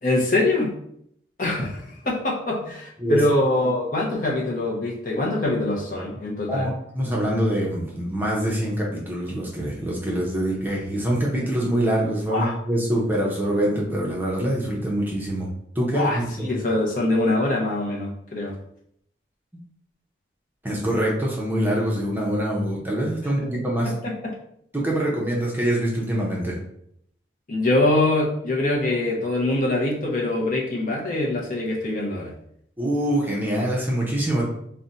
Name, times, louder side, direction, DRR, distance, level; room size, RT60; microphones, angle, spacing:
voice 1, 0.0-0.7 1.4-6.7 12.3-12.5 15.9-18.5 24.0-24.3 27.5-32.3, left 2 dB, 45° left, -2 dB, 0.6 m, -24 dB
voice 2, 6.5-15.5 15.7-16.5 19.5-19.6 20.6-23.9 24.7-26.5 32.8-34.4, right 1 dB, 10° right, -4 dB, 0.6 m, -24 dB
2.5 x 2.1 x 3.9 m, 0.71 s
head